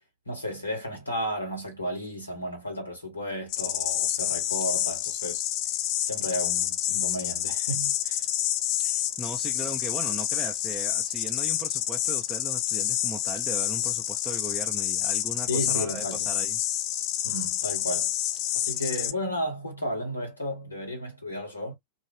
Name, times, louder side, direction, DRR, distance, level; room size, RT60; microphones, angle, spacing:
voice 1, 0.2-5.4 6.0-8.2 15.5-16.3 17.2-18.1 18.5-21.7, equal, 85° left, 1.6 m, -33 dB
sound 1, 3.5-19.1, left 13 dB, 40° left, 0.4 m, -28 dB
voice 2, 8.8-16.6, right 2 dB, 5° right, 0.6 m, -38 dB
2.8 x 2.6 x 3.1 m
figure-of-eight pair, 90°, 0 cm